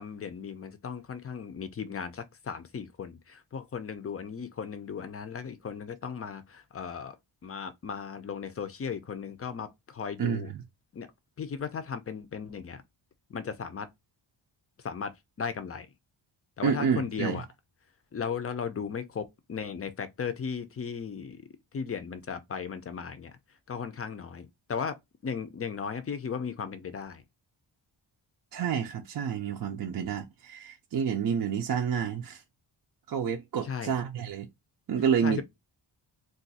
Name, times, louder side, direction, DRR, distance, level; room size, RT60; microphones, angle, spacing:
voice 1, 0.0-7.2 7.4-10.5 10.9-11.1 11.4-12.8 13.3-13.9 14.8-15.1 15.4-15.9 16.6-17.5 18.1-21.4 21.7-23.3 23.7-25.0 25.2-27.2 33.6-33.9 35.2-35.4, left 6 dB, 30° left, 0.5 m, -36 dB
voice 2, 16.6-17.4 28.5-32.4 33.1-34.5 34.9-35.4, right 7 dB, 50° right, 0.5 m, -29 dB
2.5 x 2.3 x 4.0 m
wide cardioid pair, 130°, 46 cm